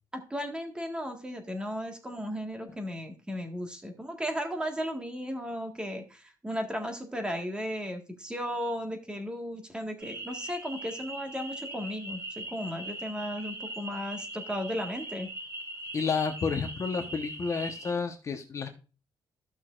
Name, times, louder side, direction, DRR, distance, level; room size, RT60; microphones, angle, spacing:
voice 1, 0.1-15.3, equal, 10° right, 5 dB, 1.7 m, -35 dB
sound 1, 10.0-17.9, right 1 dB, 30° right, 4.3 m, -40 dB
voice 2, 15.9-18.8, left 5 dB, 35° left, 5 dB, 1.1 m, -31 dB
14.5 x 6.2 x 2.5 m, 0.33 s
cardioid pair, 155°, 8 cm